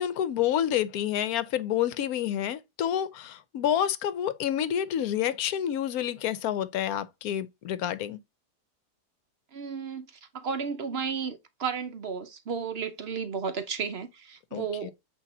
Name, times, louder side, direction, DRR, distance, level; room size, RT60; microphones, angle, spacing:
voice 1, 0.0-8.2 14.5-14.9, left 10 dB, 70° left, 1.0 m, -28 dB
voice 2, 9.5-14.9, right 6 dB, 55° right, 0.7 m, -33 dB
8.3 x 2.9 x 4.1 m
omnidirectional pair, 1.7 m